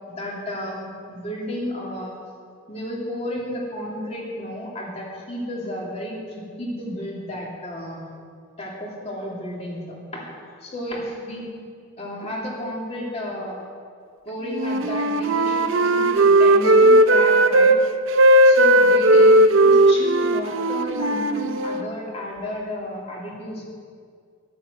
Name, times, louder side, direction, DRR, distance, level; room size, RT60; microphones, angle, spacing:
voice 1, 0.1-2.2 2.7-8.1 8.6-10.3 10.6-11.5 12.0-13.6 14.2-17.7 18.4-23.7, left 1 dB, 30° left, -3 dB, 2.7 m, -32 dB
Wind instrument woodwind instrument, 14.5-17.8 18.1-21.9, right 1 dB, 70° right, 0.7 m, -16 dB
11.5 x 11.5 x 7.8 m, 2.1 s
head